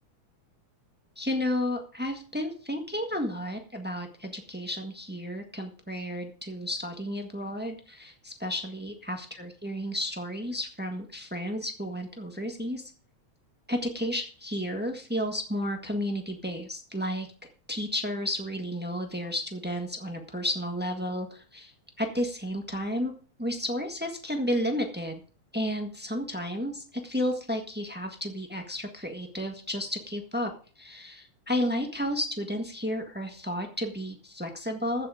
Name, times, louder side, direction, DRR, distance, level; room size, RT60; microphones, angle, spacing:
voice 1, 1.2-12.8 13.7-17.3 17.7-21.7 22.0-23.1 23.4-25.2 25.5-30.5 30.8-35.1, equal, 15° right, 3 dB, 0.4 m, -32 dB
15.0 x 7.8 x 5.0 m, 0.40 s
omnidirectional pair, 3.4 m